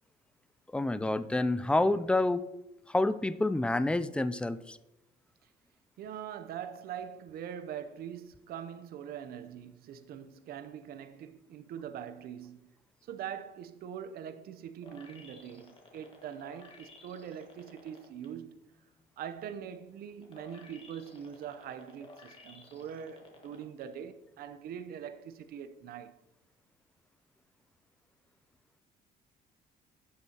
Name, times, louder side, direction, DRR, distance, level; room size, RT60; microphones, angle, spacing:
voice 1, 0.7-2.5 2.9-4.8, left 2 dB, 5° left, 0.4 m, -28 dB
voice 2, 6.0-12.7 13.0-18.6 19.2-26.2, right 9 dB, 65° right, 0.7 m, -43 dB
sound 1, 14.8-18.3 18.7-23.8 24.3-24.4, left 2 dB, 30° left, 1.7 m, -55 dB
10.5 x 6.7 x 2.9 m
cardioid pair, 110°, 17 cm